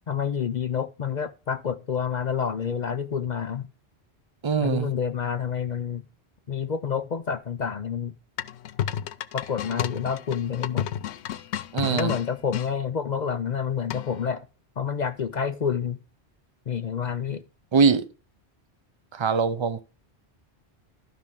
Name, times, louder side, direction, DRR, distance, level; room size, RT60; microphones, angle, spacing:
voice 1, 0.1-3.7 4.6-6.0 6.5-8.2 9.3-10.9 11.8-14.5 14.8-16.0 16.7-17.4, left 7 dB, 50° left, 0.6 m, -28 dB
voice 2, 4.4-4.9 11.7-12.1 17.7-18.1 19.1-19.8, right 5 dB, 30° right, 0.6 m, -22 dB
sound 1, 8.4-12.7 13.9-14.3, left 10 dB, 90° left, 0.9 m, -32 dB
12.5 x 5.9 x 3.5 m
omnidirectional pair, 1.1 m